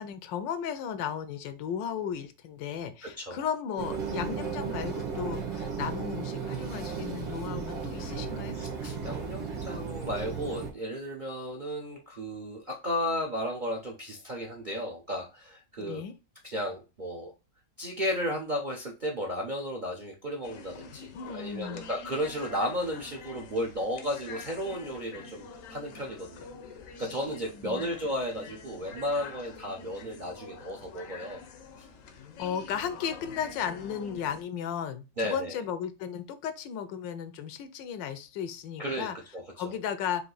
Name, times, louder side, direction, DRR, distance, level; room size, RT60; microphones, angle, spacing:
voice 1, 0.0-8.6 15.8-16.1 21.1-21.8 27.6-27.9 32.4-39.2 39.6-40.3, left 8 dB, 80° left, 11 dB, 1.3 m, -35 dB
voice 2, 3.0-3.5 8.5-16.0 16.4-17.3 17.8-26.5 27.0-31.4 31.8-31.9 35.2-35.6 38.8-39.7, equal, 45° right, 0 dB, 0.6 m, -34 dB
sound 1, 3.8-10.7, right 5 dB, 80° right, 2.3 m, -35 dB
sound 2, 20.4-34.4, left 5 dB, 60° left, 0.8 m, -46 dB
4.8 x 2.8 x 3.9 m, 0.28 s
omnidirectional pair, 2.0 m